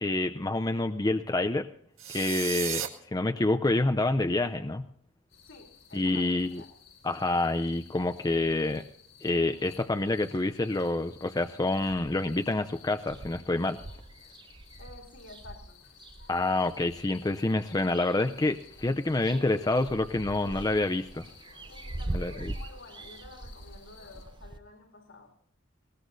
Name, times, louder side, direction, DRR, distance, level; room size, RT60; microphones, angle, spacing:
voice 1, 0.0-1.7 2.1-2.9 3.1-4.8 5.9-6.6 7.0-8.8 9.2-13.8 16.3-21.3 22.1-22.5, left 2 dB, 20° left, 0.5 m, -27 dB
sound 1, 2.0-2.9, right 10 dB, 80° right, 1.9 m, -33 dB
sound 2, 5.3-24.3, left 5 dB, 90° left, 4.2 m, -55 dB
voice 2, 5.5-6.7 14.8-15.8 21.7-25.4, left 3 dB, 70° left, 3.1 m, -51 dB
sound 3, 11.7-12.3 12.7-12.8 13.0-17.1 17.6-18.4 18.7-24.6, right 1 dB, 25° right, 0.6 m, -42 dB
20.5 x 18.5 x 2.7 m
head